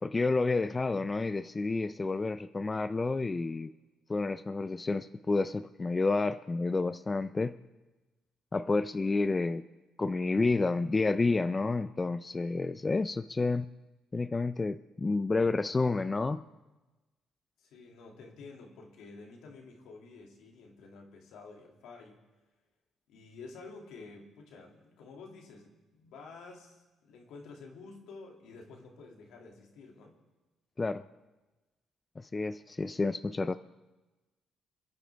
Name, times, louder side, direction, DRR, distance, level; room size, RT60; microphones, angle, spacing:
voice 1, 0.0-3.7 4.1-7.6 8.5-9.6 10.0-13.7 14.1-16.4 30.8-31.0 32.2-33.6, left 3 dB, 30° left, 11 dB, 0.5 m, -30 dB
voice 2, 17.6-22.2 23.1-30.2, left 3 dB, 75° left, 1 dB, 2.5 m, -50 dB
27.5 x 10.5 x 3.5 m, 1.1 s
supercardioid pair, 65°, 0 cm